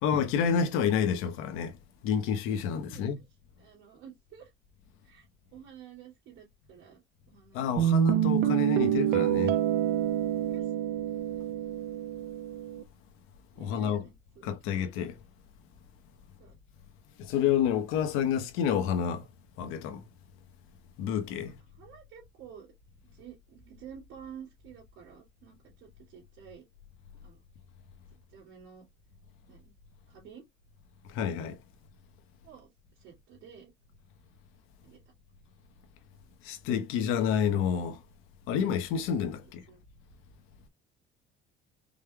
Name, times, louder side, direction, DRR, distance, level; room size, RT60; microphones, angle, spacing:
voice 1, 0.0-1.8 2.0-3.2 7.5-9.6 13.6-14.0 14.4-15.1 17.2-19.2 19.6-20.0 21.0-21.5 31.1-31.6 36.4-38.0 38.5-39.6, left 8 dB, 80° left, 1.0 m, -29 dB
voice 2, 2.7-3.2 3.6-4.5 5.0-7.0 7.3-8.0 10.4-10.7 13.5-14.8 16.4-16.6 21.4-22.7 23.0-26.7 27.2-27.4 28.1-28.9 29.5-29.7 30.1-30.4 32.4-33.7 34.8-35.0 39.4-39.8, right 8 dB, 75° right, 2.6 m, -51 dB
Guitar, 7.8-12.8, right 11 dB, 50° right, 0.5 m, -27 dB
5.1 x 3.4 x 2.2 m
cardioid pair, 150°, 21 cm